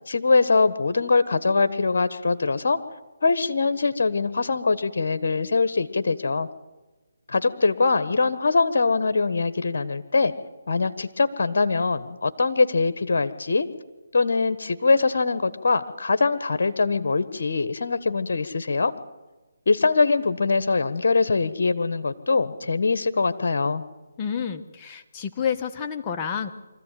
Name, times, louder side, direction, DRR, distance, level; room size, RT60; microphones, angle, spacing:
voice 1, 0.1-2.8 3.2-6.5 7.3-10.3 10.7-13.7 14.1-18.9 19.7-23.8, left 4 dB, 60° left, 12 dB, 1.4 m, -22 dB
voice 2, 24.2-26.5, left 7 dB, 20° left, 4 dB, 1.4 m, -29 dB
24.0 x 14.5 x 9.2 m, 1.2 s
figure-of-eight pair, 155°, 0 cm